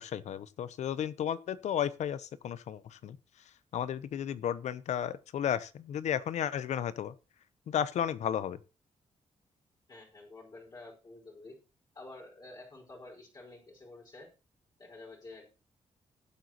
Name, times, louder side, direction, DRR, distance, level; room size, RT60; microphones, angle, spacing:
voice 1, 0.0-3.2 3.7-7.1 7.7-8.6, left 9 dB, 80° left, 0.8 m, -33 dB
voice 2, 9.9-11.5 11.9-14.3 14.8-15.5, left 2 dB, 35° left, 5.1 m, -50 dB
19.5 x 8.0 x 3.0 m
cardioid pair, 110°, 12 cm